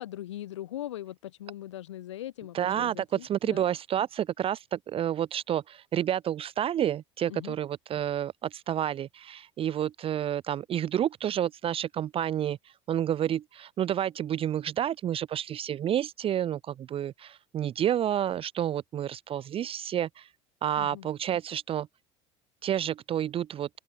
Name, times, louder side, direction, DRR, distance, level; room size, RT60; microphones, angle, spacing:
voice 1, 0.0-3.7 7.3-7.6 20.8-21.1, left 13 dB, 80° left, 1.0 m, -40 dB
voice 2, 2.5-20.3 20.6-21.9 22.6-23.7, right 10 dB, 40° right, 0.7 m, -30 dB
open air
hypercardioid pair, 70°, 15 cm